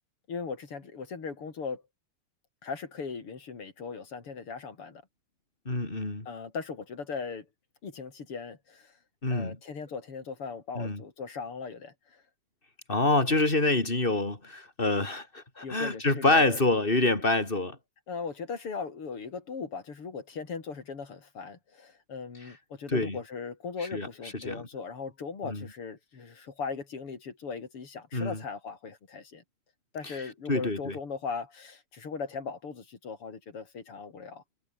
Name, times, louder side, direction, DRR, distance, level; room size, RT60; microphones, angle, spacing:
voice 1, 0.3-1.8 2.6-5.0 6.3-7.5 7.8-8.9 9.3-12.2 15.6-16.6 18.1-29.4 29.9-34.4, left 5 dB, 85° left, 4.4 m, -38 dB
voice 2, 5.7-6.3 9.2-9.6 10.7-11.0 12.9-17.8 22.9-23.2 23.9-24.1 24.4-24.6 25.4-25.7 28.1-28.4 30.0-30.2 30.5-31.0, left 2 dB, 25° left, 4.7 m, -26 dB
omnidirectional pair, 2.4 m